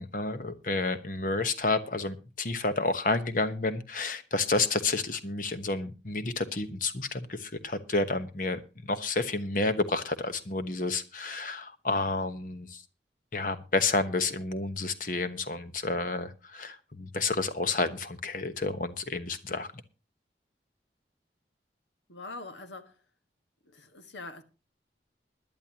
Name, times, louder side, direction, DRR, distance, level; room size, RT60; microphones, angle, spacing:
voice 1, 0.0-12.8 13.3-19.7, left 3 dB, 50° left, 1.1 m, -30 dB
voice 2, 22.1-23.0 23.7-24.4, left 3 dB, 85° left, 1.6 m, -43 dB
21.0 x 11.0 x 2.9 m
head